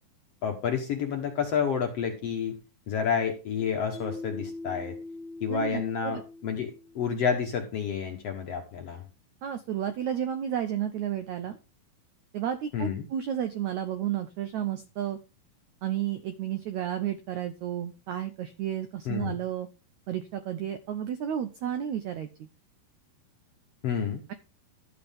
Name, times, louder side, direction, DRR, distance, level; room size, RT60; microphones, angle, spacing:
voice 1, 0.4-2.6 2.9-4.9 5.4-9.0 12.7-13.0 19.1-19.4 23.8-24.2, left 7 dB, 60° left, 4 dB, 1.7 m, -29 dB
Mallet percussion, 3.9-7.2, left 2 dB, 25° left, 1.4 m, -42 dB
voice 2, 5.5-6.2 9.4-11.6 12.3-15.2 15.8-19.7 20.1-22.5, right 10 dB, 80° right, 10 dB, 1.6 m, -32 dB
12.5 x 7.8 x 3.5 m, 0.30 s
omnidirectional pair, 4.3 m